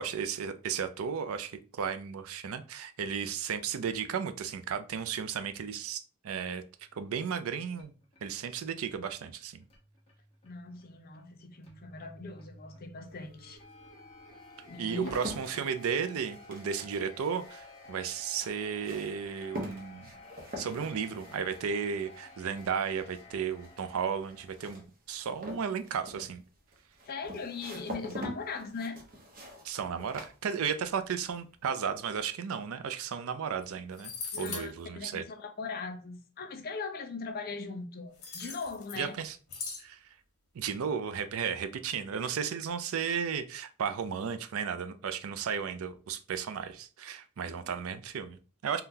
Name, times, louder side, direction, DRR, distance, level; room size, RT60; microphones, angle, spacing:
voice 1, 0.0-6.6 6.9-7.9 8.2-9.6 14.8-20.1 20.6-24.8 25.1-26.4 29.6-34.1 34.4-35.2 39.0-39.4 39.8-40.0 40.5-48.8, right 7 dB, 70° right, 0.4 m, -34 dB
sound 1, 6.8-24.8, left 2 dB, 25° left, 0.9 m, -54 dB
voice 2, 10.4-13.6 14.6-15.2 27.0-29.0 34.3-39.2, left 4 dB, 45° left, 0.5 m, -40 dB
sound 2, 13.1-13.2 13.9-31.0 31.3-31.9, equal, 40° right, 0.8 m, -45 dB
sound 3, 33.6-33.7 33.9-34.7 38.2-39.1 39.5-39.9, left 5 dB, 65° left, 1.1 m, -40 dB
3.7 x 2.3 x 2.7 m
head